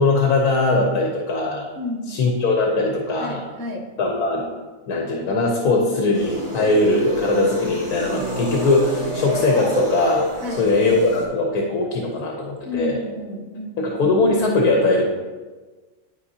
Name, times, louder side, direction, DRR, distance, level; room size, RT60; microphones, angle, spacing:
voice 1, 0.0-1.7 2.1-3.4 4.0-4.4 4.9-10.3 10.6-13.0 13.8-15.1, left 2 dB, 80° left, 0 dB, 1.4 m, -20 dB
voice 2, 1.8-2.2 3.2-3.8 10.4-10.7 12.6-13.9, left 1 dB, 70° right, 1 dB, 1.5 m, -31 dB
sound 1, 6.1-11.3, equal, 50° right, 3.0 m, -28 dB
11.5 x 4.8 x 2.8 m, 1.3 s
omnidirectional pair, 1.6 m